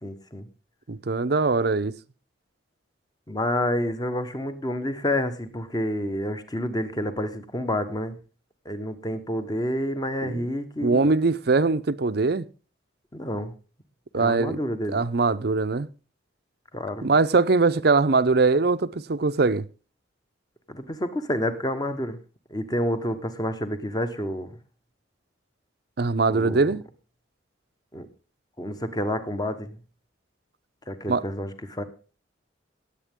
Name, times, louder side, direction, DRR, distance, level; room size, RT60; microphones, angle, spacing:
voice 1, 0.0-0.5 3.3-8.2 8.6-11.1 13.1-13.5 14.1-15.0 16.7-17.1 20.7-22.2 22.5-24.5 26.3-26.7 27.9-28.1 28.6-29.8 30.9-31.8, left 1 dB, 20° left, 1.2 m, -29 dB
voice 2, 0.9-1.9 10.2-10.5 10.8-12.5 14.1-14.6 14.9-15.9 17.0-19.6 26.0-26.8 31.1-31.2, right 3 dB, 55° right, 0.6 m, -22 dB
18.5 x 8.2 x 3.7 m
head